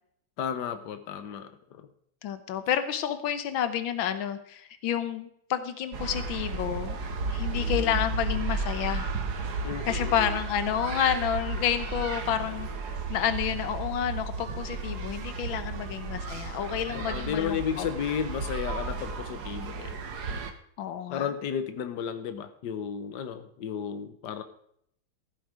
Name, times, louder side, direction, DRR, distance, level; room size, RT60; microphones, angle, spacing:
voice 1, 0.4-1.9 7.5-8.0 9.6-10.4 16.9-20.0 21.1-24.4, left 8 dB, 65° left, 9 dB, 1.7 m, -33 dB
voice 2, 2.2-7.0 7.3-9.1 9.9-12.7 13.1-17.9 20.8-21.3, left 9 dB, 90° left, 11 dB, 1.8 m, -30 dB
sound 1, 5.9-20.5, right 3 dB, 60° right, 1.7 m, -33 dB
15.0 x 8.5 x 4.9 m, 0.68 s
omnidirectional pair, 2.1 m